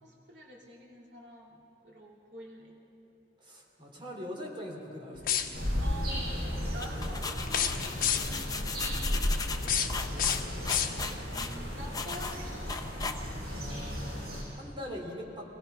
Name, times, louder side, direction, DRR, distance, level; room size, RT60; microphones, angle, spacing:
voice 1, 0.0-2.8 5.8-9.2 11.4-12.8, right 1 dB, 80° right, -2 dB, 2.6 m, -47 dB
voice 2, 3.4-5.9 9.6-10.7 13.5-15.5, equal, 30° right, -2 dB, 3.3 m, -43 dB
sound 1, 5.2-5.8 7.4-8.5 9.5-11.3, left 8 dB, 50° left, 1.1 m, -31 dB
sound 2, 5.5-14.4, equal, 60° right, 6.5 m, -36 dB
sound 3, 6.6-13.6, left 2 dB, 20° left, 0.9 m, -35 dB
25.5 x 18.0 x 5.7 m, 2.9 s
head